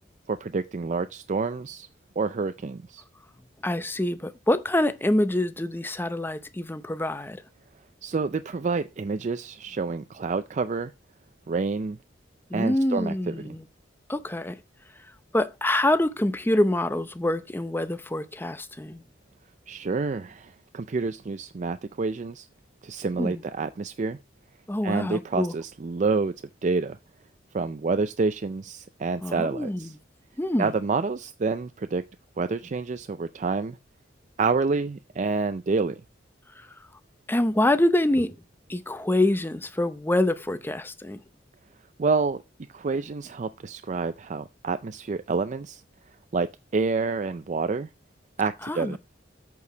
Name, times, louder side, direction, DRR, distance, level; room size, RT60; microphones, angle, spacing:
voice 1, 0.3-1.9 2.2-3.0 8.0-10.9 11.5-12.0 12.5-13.5 19.7-22.5 22.8-24.2 24.8-26.3 26.6-27.0 27.5-29.9 30.6-32.0 32.4-33.8 34.4-36.0 42.0-42.4 42.7-45.8 46.3-46.5 46.7-47.9 48.4-49.0, right 4 dB, 40° right, 0.4 m, -28 dB
voice 2, 3.6-7.4 12.5-13.7 14.1-14.6 15.3-19.0 23.2-23.4 24.7-25.5 29.2-29.9 30.4-30.7 36.6-36.7 37.3-38.4 38.7-41.2 48.6-49.0, left 1 dB, 10° left, 0.6 m, -26 dB
8.4 x 4.7 x 6.0 m
head